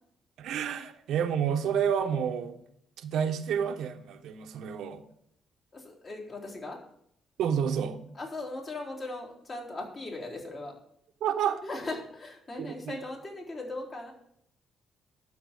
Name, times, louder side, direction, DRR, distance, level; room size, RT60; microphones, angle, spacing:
voice 1, 0.4-2.5 3.0-5.0 7.4-8.0 11.2-11.6 12.6-13.0, right 8 dB, 80° right, 6 dB, 1.1 m, -29 dB
voice 2, 5.7-6.8 8.1-10.8 11.6-14.1, left 2 dB, 40° left, -2 dB, 3.8 m, -39 dB
12.5 x 4.5 x 8.1 m, 0.72 s
cardioid pair, 90°, 0 cm